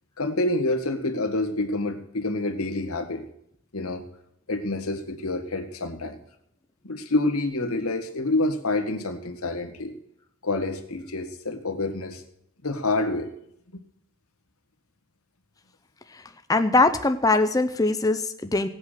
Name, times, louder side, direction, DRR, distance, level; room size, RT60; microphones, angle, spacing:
voice 1, 0.2-3.2 3.7-4.0 4.5-6.2 6.8-9.9 10.4-12.2 12.6-13.3, left 2 dB, 90° left, 6 dB, 1.7 m, -27 dB
voice 2, 16.5-18.7, left 3 dB, 15° left, 8 dB, 0.6 m, -21 dB
16.5 x 8.4 x 6.6 m, 0.72 s
head